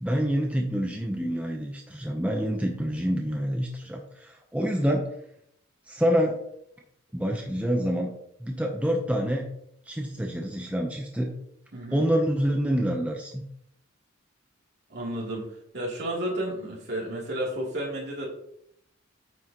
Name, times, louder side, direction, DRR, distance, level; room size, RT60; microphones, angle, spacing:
voice 1, 0.0-5.1 5.9-6.4 7.1-8.1 8.4-9.5 9.9-11.3 11.9-13.4, equal, 5° right, 1 dB, 0.7 m, -27 dB
voice 2, 11.7-12.0 14.9-15.5 15.7-18.3, right 1 dB, 55° right, -4 dB, 2.9 m, -32 dB
9.0 x 6.2 x 2.9 m, 0.74 s
head